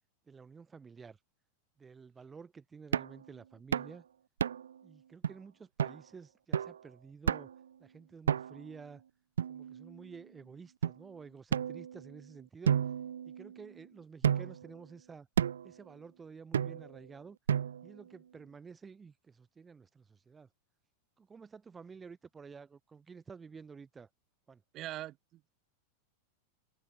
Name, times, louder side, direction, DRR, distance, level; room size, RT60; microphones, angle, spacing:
voice 1, 0.3-1.2 1.8-4.0 4.8-7.5 7.8-9.0 9.5-12.8 13.2-15.3 15.6-17.4 17.8-20.5 21.2-24.1 24.5-24.6, right 5 dB, 15° right, 4.4 m, -51 dB
sound 1, 2.9-3.2 3.7-4.0 4.4-4.8 5.2-5.3 5.8-6.0 6.5-6.8 7.3-7.6 8.3-8.7 9.4-10.1 10.8-10.9 11.5-12.2 12.7-13.7 14.2-14.7 15.4-15.7 16.5-17.0 17.5-18.0, right 8 dB, 65° right, 0.5 m, -32 dB
voice 2, 24.7-25.5, right 15 dB, 35° right, 4.0 m, -42 dB
figure-of-eight pair, 90°, 0 cm